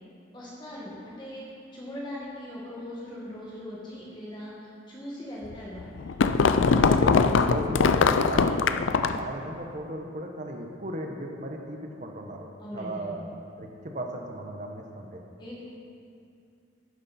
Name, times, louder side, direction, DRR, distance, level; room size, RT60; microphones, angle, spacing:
voice 1, 0.3-1.4 1.7-4.5 4.9-6.1 12.6-13.2 15.4-15.7, left 1 dB, 25° left, -6 dB, 1.8 m, -40 dB
sound 1, 5.5-9.3, left 5 dB, 80° left, 0.4 m, -22 dB
voice 2, 6.8-12.5 12.7-13.2 13.6-15.2, right 1 dB, 40° right, 2 dB, 1.0 m, -36 dB
12.5 x 9.8 x 4.3 m, 2.5 s
head